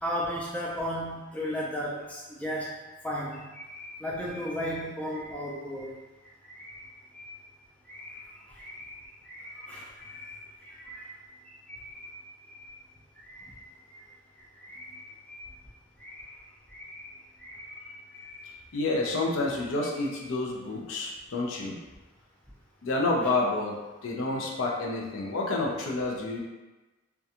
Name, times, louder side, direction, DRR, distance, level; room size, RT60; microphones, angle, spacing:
voice 1, 0.0-2.7 3.0-6.0 6.5-6.9 7.1-7.4 7.9-11.2 11.5-12.7 13.2-14.0 14.6-15.4 16.0-16.4 16.7-17.1 17.4-18.6 19.1-19.2, equal, 5° left, -5 dB, 0.3 m, -37 dB
voice 2, 18.7-21.8 22.8-23.8 24.0-26.4, left 2 dB, 75° left, -1 dB, 0.5 m, -29 dB
2.4 x 2.2 x 2.8 m, 1.1 s
head